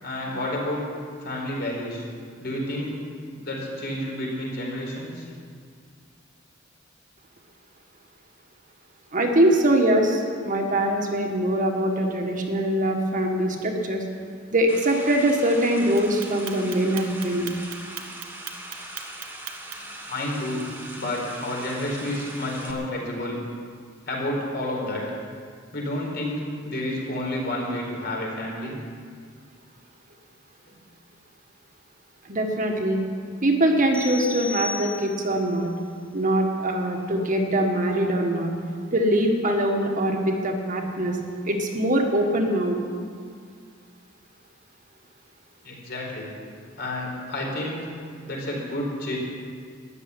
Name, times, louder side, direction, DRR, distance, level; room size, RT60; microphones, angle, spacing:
voice 1, 0.0-0.8 1.2-2.0 2.4-3.0 3.4-5.2 20.0-20.6 21.0-23.4 24.1-25.2 25.7-28.8 45.6-46.3 46.8-47.9 48.3-49.2, left 1 dB, 55° left, -2 dB, 4.4 m, -30 dB
voice 2, 9.1-14.0 14.5-17.6 32.3-33.0 33.4-35.7 36.1-38.5 38.9-41.2 41.4-42.8, right 1 dB, 40° right, 2 dB, 1.7 m, -23 dB
sound 1, 14.7-22.7, right 1 dB, 10° right, 1.9 m, -40 dB
Clock, 16.0-20.0, right 11 dB, 80° right, 1.3 m, -37 dB
sound 2, 33.9-35.5, left 4 dB, 5° left, 1.5 m, -35 dB
13.5 x 9.8 x 9.9 m, 2.1 s
head